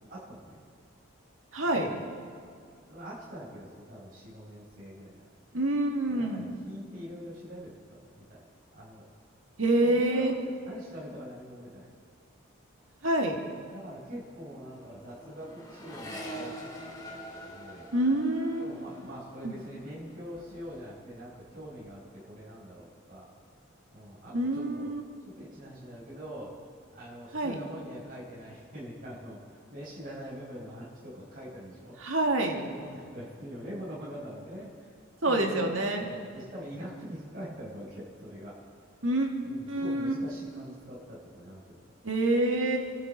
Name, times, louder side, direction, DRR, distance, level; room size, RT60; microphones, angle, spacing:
voice 1, 0.1-0.6 1.6-2.0 2.9-5.3 6.1-7.7 8.1-8.4 8.7-9.0 9.8-11.9 13.6-16.7 17.0-17.9 18.6-23.3 23.9-24.9 25.2-26.5 26.9-32.1 32.6-34.9 35.2-38.6 39.4-41.8, equal, 45° right, -7 dB, 5.0 m, -44 dB
voice 2, 1.5-1.9 5.5-6.5 9.6-10.3 13.0-13.4 17.9-18.7 19.4-19.5 24.3-25.0 27.3-27.6 32.0-32.6 35.2-36.1 39.0-39.3 39.7-40.2 42.0-42.8, right 1 dB, 75° right, 2 dB, 2.1 m, -26 dB
Accelerating revving vroom, 13.0-13.2 13.5-21.0 21.3-21.9, equal, 20° left, 2.2 m, -46 dB
27.5 x 12.0 x 4.3 m, 2.3 s
head